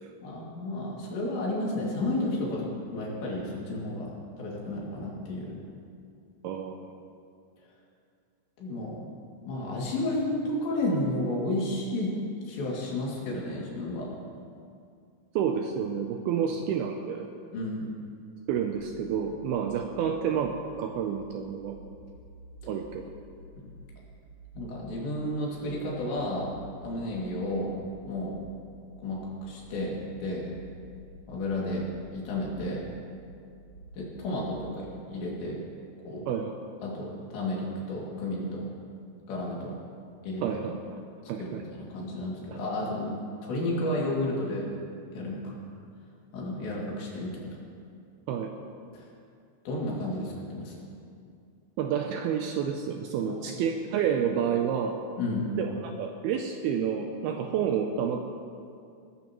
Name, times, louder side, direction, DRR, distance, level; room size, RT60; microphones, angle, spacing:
voice 1, 0.2-5.6 8.6-9.0 9.5-12.2 12.5-14.1 17.5-17.9 23.6-23.7 24.5-26.5 26.8-27.7 28.0-28.4 29.0-30.5 31.3-31.9 32.1-32.9 33.9-35.6 36.0-36.2 36.8-38.7 39.3-39.8 40.2-40.6 41.4-45.6 46.3-47.6 48.9-49.1 49.7-50.9 53.2-53.4 55.2-55.5, left 1 dB, 80° left, -4 dB, 4.8 m, -32 dB
voice 2, 6.4-6.8 15.4-17.3 18.5-21.8 22.7-23.0 36.3-36.5 40.4-41.0 41.3-41.6 48.3-48.5 51.8-55.0 55.6-55.7 56.0-58.2, right 8 dB, 80° right, 4 dB, 2.3 m, -29 dB
sound 1, 18.7-34.7, right 2 dB, 50° right, 4.2 m, -50 dB
19.0 x 15.0 x 3.1 m, 2.4 s
omnidirectional pair, 5.0 m